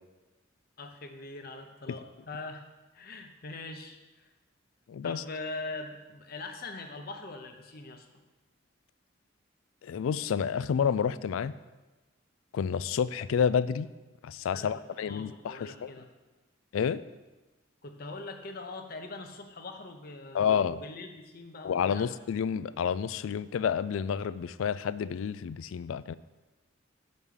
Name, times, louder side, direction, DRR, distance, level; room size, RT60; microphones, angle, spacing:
voice 1, 0.8-2.6 2.9-4.3 5.0-8.2 14.5-16.1 17.8-22.1, left 3 dB, 45° left, 5 dB, 0.7 m, -42 dB
voice 2, 4.9-5.2 9.8-11.5 12.5-13.9 14.2-15.9 16.7-17.0 20.3-20.8 21.6-26.1, left 7 dB, 80° left, 16 dB, 0.3 m, -29 dB
7.1 x 5.4 x 6.4 m, 1.2 s
head